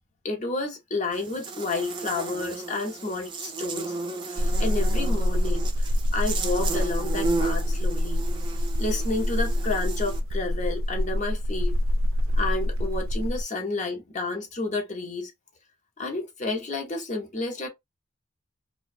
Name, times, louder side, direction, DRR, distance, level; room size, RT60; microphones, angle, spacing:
voice 1, 0.2-4.0 4.2-8.2 8.8-11.7 12.4-15.3 16.0-17.7, left 3 dB, 40° left, 0.7 m, -31 dB
Buzz, 1.1-10.2, right 3 dB, 25° right, 0.5 m, -34 dB
sound 1, 4.4-13.4, equal, 85° right, 0.4 m, -26 dB
2.4 x 2.2 x 2.5 m
head